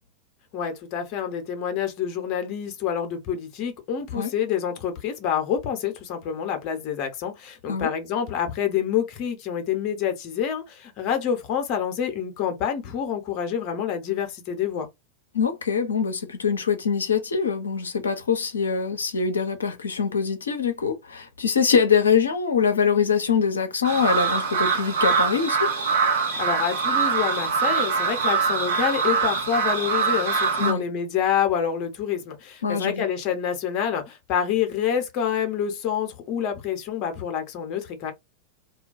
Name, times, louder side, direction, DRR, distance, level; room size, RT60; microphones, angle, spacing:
voice 1, 0.5-14.9 26.4-38.1, left 8 dB, 40° left, 0.7 m, -27 dB
voice 2, 15.3-25.7 30.6-30.8 32.6-33.1, left 6 dB, 70° left, 0.5 m, -23 dB
sound 1, 23.8-30.7, right 5 dB, 65° right, 0.9 m, -23 dB
2.3 x 2.2 x 2.5 m
figure-of-eight pair, 90°, 0 cm